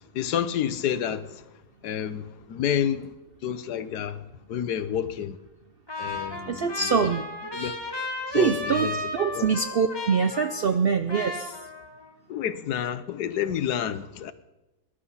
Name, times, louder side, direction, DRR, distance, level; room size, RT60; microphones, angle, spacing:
voice 1, 0.1-1.4 1.8-3.1 3.4-5.4 6.0-7.1 7.5-7.7 8.3-9.0 9.3-9.5 12.3-14.3, left 9 dB, 70° left, 1.4 m, -29 dB
Trumpet, 5.9-10.8 11.1-12.1, left 2 dB, 15° left, 1.8 m, -34 dB
voice 2, 6.5-7.3 8.3-11.6, right 6 dB, 70° right, 0.5 m, -24 dB
21.0 x 11.5 x 5.7 m
omnidirectional pair, 1.8 m